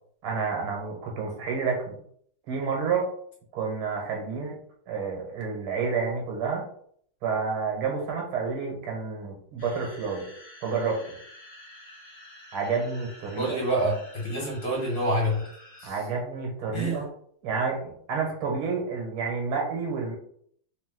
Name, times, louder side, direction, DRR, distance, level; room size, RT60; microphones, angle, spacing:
voice 1, 0.2-2.0 2.5-3.1 3.5-4.5 4.9-6.6 7.2-10.3 10.6-11.0 12.5-13.6 15.8-17.1 17.4-20.1, right 5 dB, 80° right, 0 dB, 2.0 m, -29 dB
sound 1, 9.6-15.9, left 1 dB, 30° left, 0.9 m, -49 dB
voice 2, 13.4-15.5 15.8-16.0 16.7-17.0, right 1 dB, 50° left, -3 dB, 1.9 m, -27 dB
4.1 x 2.7 x 3.7 m, 0.63 s
omnidirectional pair, 2.3 m